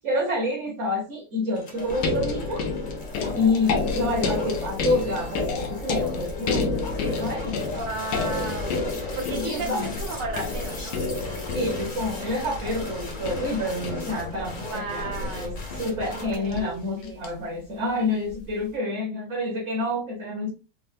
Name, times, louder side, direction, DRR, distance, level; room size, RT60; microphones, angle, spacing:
voice 1, 0.0-2.6 3.3-7.6 9.3-9.9 11.5-20.5, left 2 dB, 50° right, -1 dB, 1.1 m, -28 dB
sound 1, 1.5-16.4, left 3 dB, 45° left, 0.7 m, -38 dB
sound 2, 1.9-17.3 18.3-18.4, left 3 dB, 75° left, 1.3 m, -30 dB
voice 2, 7.6-8.8 9.1-11.0 14.6-15.6 16.1-17.2, right 3 dB, 80° right, 2 dB, 1.6 m, -34 dB
4.2 x 2.0 x 2.5 m, 0.33 s
omnidirectional pair, 1.9 m